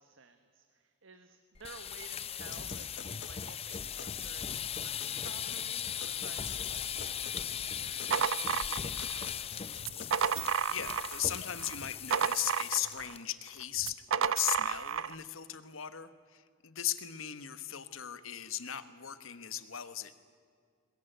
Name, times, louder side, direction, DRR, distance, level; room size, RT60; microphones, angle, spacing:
voice 1, 0.0-10.1, right 4 dB, 75° right, 8 dB, 1.3 m, -55 dB
sound 1, 1.5-13.2 13.5-13.8 14.1-14.2 14.6-15.0, left 8 dB, 30° left, 0.6 m, -38 dB
sound 2, 2.5-10.5, left 6 dB, 60° left, 1.0 m, -50 dB
sound 3, 7.8-9.3 9.8-11.3 11.6-13.1 13.8-15.2, right 7 dB, 90° right, 0.6 m, -32 dB
voice 2, 10.7-20.1, left 11 dB, 90° left, 12 dB, 1.3 m, -37 dB
21.0 x 20.5 x 9.2 m, 2.1 s
head